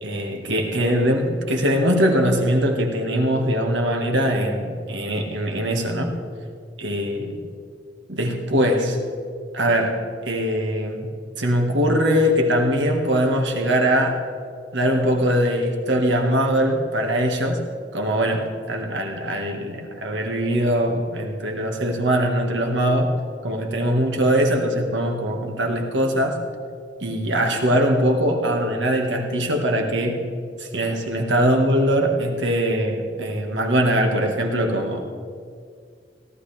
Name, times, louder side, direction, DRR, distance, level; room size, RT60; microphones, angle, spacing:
voice 1, 0.0-6.1 6.8-7.4 8.1-9.0 9.5-10.0 10.2-11.1 11.4-14.2 14.7-17.6 17.9-23.1 23.4-26.4 27.0-30.2 30.6-35.0, equal, 85° right, 2 dB, 1.6 m, -21 dB
17.5 x 12.5 x 3.4 m, 2.2 s
head